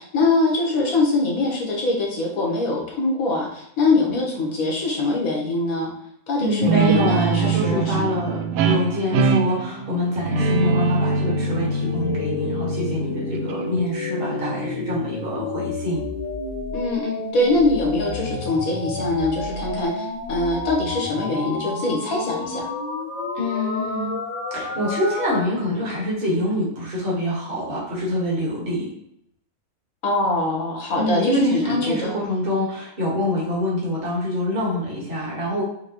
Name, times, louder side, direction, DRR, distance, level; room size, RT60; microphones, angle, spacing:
voice 1, 0.0-5.9 6.3-8.2 16.7-22.7 30.0-32.2, left 2 dB, 80° left, -1 dB, 1.6 m, -23 dB
voice 2, 6.4-16.0 23.4-24.2 24.5-28.9 31.0-35.6, left 1 dB, 40° right, -5 dB, 1.7 m, -25 dB
Guitar, 6.6-13.8, right 4 dB, 80° right, 1.0 m, -23 dB
sound 1, 10.4-25.4, left 2 dB, 40° left, 0.8 m, -30 dB
5.8 x 3.0 x 3.0 m, 0.75 s
omnidirectional pair, 1.5 m